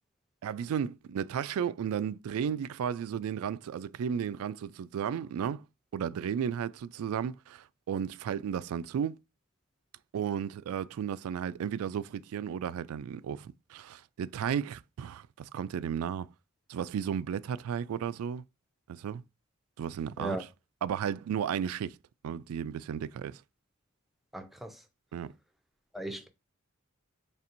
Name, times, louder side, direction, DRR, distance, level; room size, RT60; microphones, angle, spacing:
voice 1, 0.4-5.6 5.9-9.2 10.1-16.3 16.7-18.4 18.9-19.2 19.8-20.4 20.8-22.0 22.2-23.4 25.1-25.3, right 8 dB, 80° right, 0.3 m, -34 dB
voice 2, 24.3-24.8 25.9-26.3, right 1 dB, ahead, 0.5 m, -37 dB
4.3 x 3.3 x 2.5 m
head